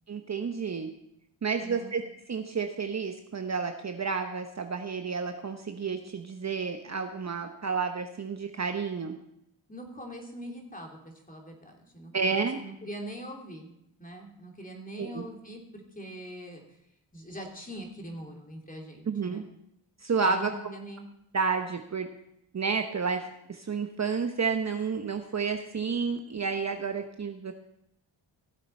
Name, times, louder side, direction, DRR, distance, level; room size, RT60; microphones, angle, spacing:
voice 1, 0.1-0.9 1.4-2.0 2.3-9.2 12.1-12.6 15.0-15.2 19.1-19.4 20.0-20.5 21.3-22.1 22.5-27.5, right 5 dB, 35° right, 6 dB, 0.9 m, -30 dB
voice 2, 1.6-1.9 9.7-13.7 14.0-16.6 17.1-19.4 20.2-21.1, right 1 dB, 15° left, 1 dB, 2.7 m, -43 dB
17.0 x 7.7 x 4.3 m, 0.78 s
cardioid pair, 75°, 47 cm